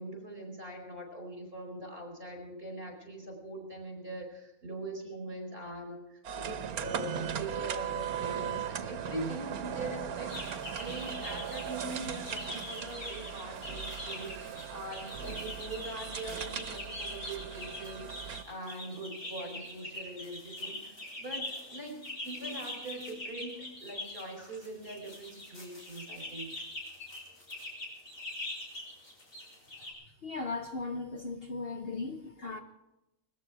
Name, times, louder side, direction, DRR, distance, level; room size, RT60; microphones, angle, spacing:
voice 1, 0.0-26.5, right 1 dB, 40° right, 5.1 m, -42 dB
sound 1, 6.2-18.4, right 8 dB, 90° right, 1.4 m, -38 dB
sound 2, 10.3-29.9, left 1 dB, 65° left, 4.6 m, -43 dB
voice 2, 30.2-32.6, left 3 dB, 45° left, 1.1 m, -37 dB
20.5 x 14.0 x 4.8 m
omnidirectional pair, 1.5 m